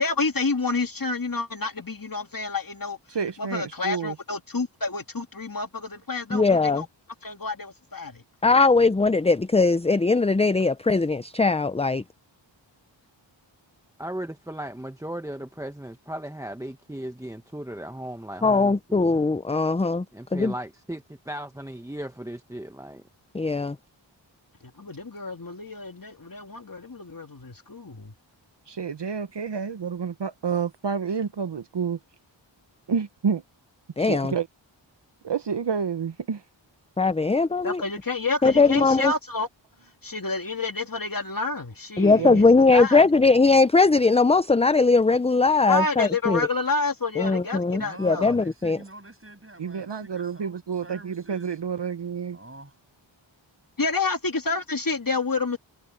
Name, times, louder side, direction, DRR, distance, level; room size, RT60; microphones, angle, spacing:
voice 1, 0.0-3.0 3.4-6.9 7.2-8.2 24.6-28.1 37.6-39.5 40.0-42.4 42.7-43.0 45.6-48.3 53.8-55.6, left 3 dB, 45° left, 2.5 m, -29 dB
voice 2, 3.1-4.2 28.7-32.0 32.9-33.4 34.0-34.5 35.2-36.4 42.2-42.4 49.6-52.4, right 6 dB, 65° right, 0.9 m, -29 dB
voice 3, 6.3-6.8 8.4-12.0 18.4-20.0 20.3-20.5 23.3-23.8 34.0-34.3 37.0-37.8 38.4-39.1 42.0-46.4 47.2-48.8, left 3 dB, 15° left, 0.5 m, -20 dB
voice 4, 14.0-19.2 20.1-23.0, right 1 dB, 5° right, 1.0 m, -36 dB
voice 5, 47.8-51.5 52.3-52.7, right 1 dB, 30° right, 7.9 m, -46 dB
wide cardioid pair, 75°, 46 cm